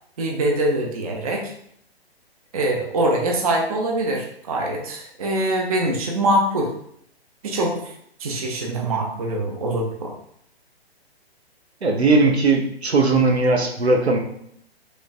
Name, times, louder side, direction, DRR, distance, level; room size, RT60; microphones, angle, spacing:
voice 1, 0.2-1.5 2.5-6.7 7.4-7.9 8.2-10.1, right 1 dB, 35° right, 1 dB, 0.4 m, -23 dB
voice 2, 11.8-14.2, right 3 dB, 85° right, 2 dB, 0.6 m, -18 dB
3.1 x 2.3 x 2.4 m, 0.70 s
figure-of-eight pair, 125°, 32 cm